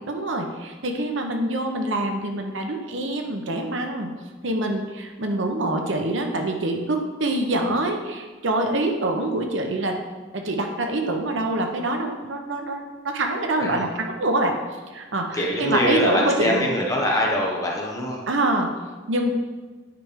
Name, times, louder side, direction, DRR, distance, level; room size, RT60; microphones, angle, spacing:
voice 1, 0.0-4.1 4.4-10.0 10.3-14.5 14.9-16.7 18.3-18.7 19.1-19.3, right 1 dB, 70° right, 3 dB, 0.9 m, -25 dB
voice 2, 15.3-18.2, left 1 dB, 15° left, -1 dB, 1.0 m, -23 dB
9.3 x 3.4 x 5.1 m, 1.3 s
head